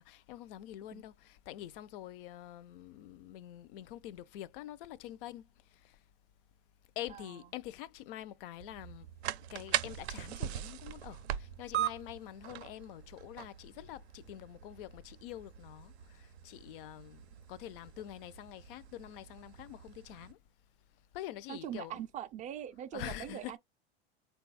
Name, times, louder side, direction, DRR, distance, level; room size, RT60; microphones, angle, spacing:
voice 1, 0.0-6.0 7.0-9.1 9.5-20.4 21.1-22.0 22.9-23.6, left 13 dB, 60° left, 0.5 m, -46 dB
sound 1, 8.6-20.3, right 12 dB, 80° right, 0.5 m, -41 dB
voice 2, 21.5-23.6, right 10 dB, 25° right, 0.3 m, -41 dB
3.9 x 2.3 x 4.0 m
hypercardioid pair, 100°, 32 cm